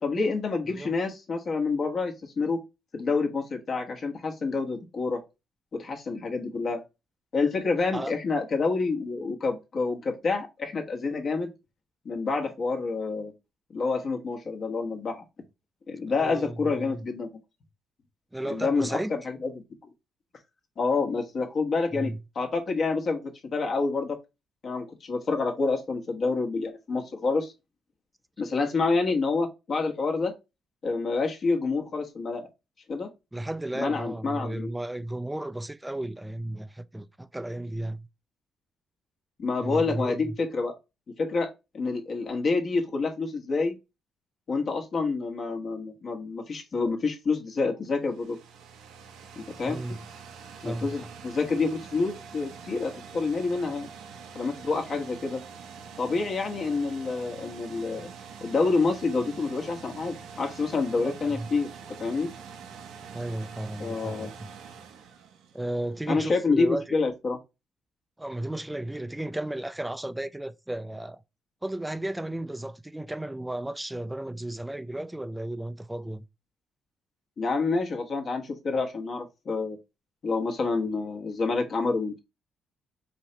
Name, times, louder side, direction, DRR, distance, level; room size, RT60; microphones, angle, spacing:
voice 1, 0.0-2.6 2.9-5.2 5.7-6.8 7.3-11.5 12.0-13.3 13.7-15.2 15.9-17.3 18.4-19.6 20.8-24.2 24.6-27.5 28.4-30.3 30.8-32.5 32.9-33.1 33.7-34.7 39.4-40.7 41.2-43.7 44.5-48.4 49.3-50.0 50.6-53.9 54.3-55.4 56.0-58.1 58.4-62.3 63.8-64.3 66.1-67.4 77.4-79.8 80.2-82.2, left 4 dB, 50° left, 1.1 m, -28 dB
voice 2, 16.2-17.0 18.3-19.1 21.9-22.2 33.3-38.1 39.6-40.4 49.7-50.0 50.6-51.0 58.0-58.1 61.0-61.5 63.1-64.5 65.5-67.0 68.2-71.2 71.6-76.2, right 1 dB, 10° right, 0.4 m, -34 dB
sound 1, 47.8-66.0, right 6 dB, 90° right, 0.7 m, -45 dB
4.6 x 2.8 x 3.2 m
cardioid pair, 90°, 0 cm